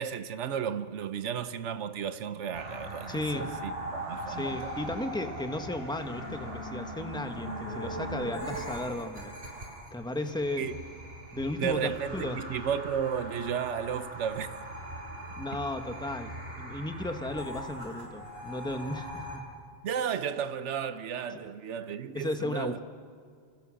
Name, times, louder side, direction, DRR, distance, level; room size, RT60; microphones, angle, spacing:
voice 1, 0.0-4.7 10.6-10.8 11.6-14.6 19.8-22.8, right 8 dB, 85° right, 1.2 m, -33 dB
sound 1, 2.5-19.4, right 1 dB, 60° right, 5.3 m, -40 dB
voice 2, 3.1-3.5 4.3-9.6 9.9-10.7 11.3-12.4 15.4-19.4 22.1-22.8, left 2 dB, 5° left, 1.3 m, -35 dB
27.5 x 27.5 x 6.4 m
omnidirectional pair, 1.2 m